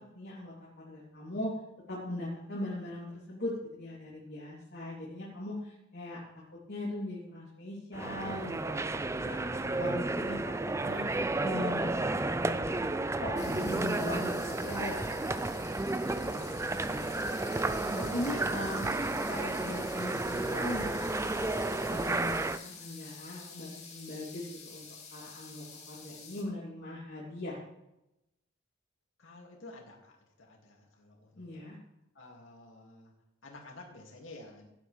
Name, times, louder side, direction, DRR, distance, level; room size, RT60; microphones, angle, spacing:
voice 1, 0.1-1.5 1.9-6.4 6.7-9.3 9.8-10.5 10.8-11.0 11.4-12.9 13.2-17.3 17.6-27.6 31.4-31.8, left 1 dB, 55° left, -6 dB, 3.2 m, -40 dB
sound 1, 7.9-22.6, right 2 dB, 15° right, 0.4 m, -32 dB
voice 2, 9.2-10.0 29.2-31.6 32.1-33.1 33.4-34.7, left 2 dB, 80° left, 0 dB, 2.5 m, -52 dB
sound 2, 13.4-26.4, left 5 dB, 35° left, 2.3 m, -48 dB
17.0 x 10.0 x 3.4 m, 0.89 s
head